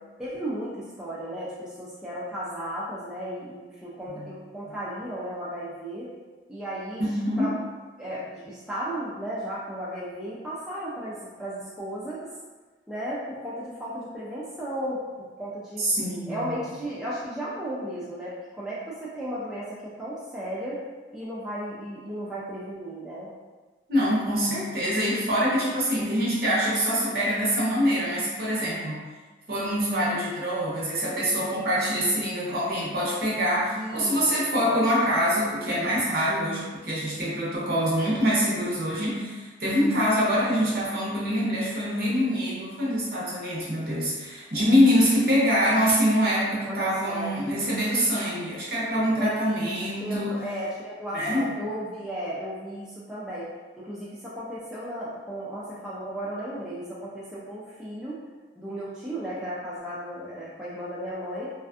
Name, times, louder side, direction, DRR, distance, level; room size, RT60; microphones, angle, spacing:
voice 1, 0.2-6.1 6.5-7.0 7.4-7.6 8.0-12.3 12.9-15.8 16.3-20.8 21.1-23.3 33.8-34.9 46.6-47.3 49.2-49.7 50.0-58.2 58.6-61.5, equal, 5° right, -9 dB, 0.3 m, -35 dB
voice 2, 7.0-7.5 15.8-16.5 23.9-29.0 29.5-50.3 51.1-51.5, equal, 55° right, -7 dB, 0.8 m, -25 dB
2.4 x 2.3 x 2.4 m, 1.3 s
head